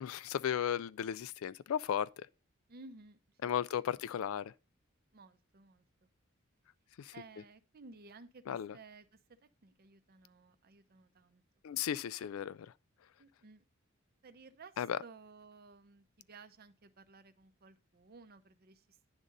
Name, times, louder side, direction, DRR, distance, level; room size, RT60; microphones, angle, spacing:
voice 1, 0.0-2.3 3.4-4.5 7.0-7.1 8.5-8.8 11.6-12.7 14.8-15.0, left 9 dB, 70° left, 0.3 m, -35 dB
voice 2, 2.7-3.5 3.9-4.0 5.1-6.1 7.1-9.2 9.6-11.4 13.2-13.6 14.2-19.1, right 3 dB, 45° right, 0.6 m, -56 dB
9.8 x 3.7 x 5.3 m
head